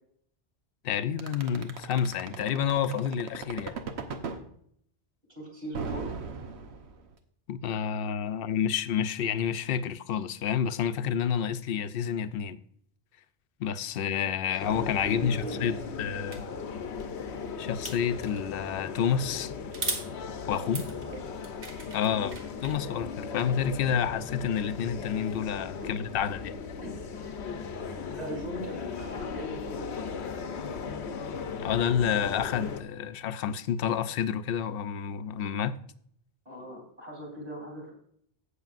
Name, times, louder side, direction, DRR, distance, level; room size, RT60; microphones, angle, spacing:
voice 1, 0.8-3.8 7.5-12.6 13.6-16.4 17.6-19.5 20.5-20.9 21.9-22.4 22.6-26.5 31.6-35.8, left 8 dB, 65° left, 0.7 m, -29 dB
sound 1, 1.2-4.4 5.7-7.1, right 5 dB, 80° right, 1.2 m, -36 dB
voice 2, 5.4-6.2 14.5-14.6 15.0-16.1 16.4-16.8 20.6-21.4 22.1-22.3 25.8-25.9 26.8-27.0 28.0-30.5 36.5-37.9, equal, 40° right, 3.5 m, -40 dB
sound 2, 14.6-32.8, left 5 dB, 85° left, 1.1 m, -38 dB
sound 3, 16.3-16.4 17.8-18.5 19.7-20.1 20.6-22.8, right 3 dB, 60° right, 1.6 m, -37 dB
16.5 x 6.6 x 2.5 m
omnidirectional pair, 1.1 m